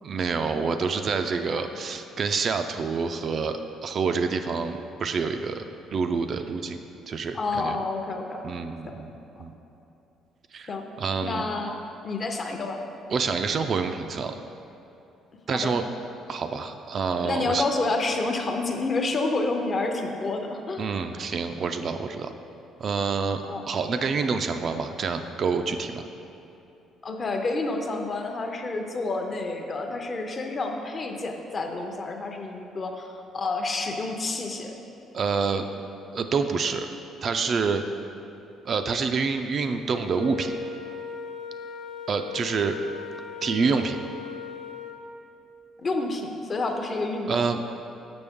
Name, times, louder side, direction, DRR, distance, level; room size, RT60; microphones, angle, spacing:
voice 1, 0.0-5.6 5.9-6.8 7.1-7.8 8.4-9.1 9.4-9.5 10.5-11.4 13.1-14.3 15.5-15.9 16.3-17.6 20.8-22.3 22.8-26.1 35.1-35.7 36.1-36.9 37.2-37.8 38.7-40.6 42.1-42.8 43.4-44.0 47.3-47.6, right 5 dB, 45° right, 7 dB, 0.3 m, -27 dB
voice 2, 7.3-8.4 10.7-10.8 11.2-11.7 12.0-12.8 15.5-15.7 17.2-20.9 23.5-23.6 27.0-34.7 45.8-47.4, left 3 dB, 35° left, 4 dB, 0.6 m, -29 dB
Wind instrument woodwind instrument, 40.1-45.0, left 6 dB, 85° left, 0.7 m, -38 dB
6.9 x 6.0 x 3.6 m, 2.9 s
cardioid pair, 125°, 0 cm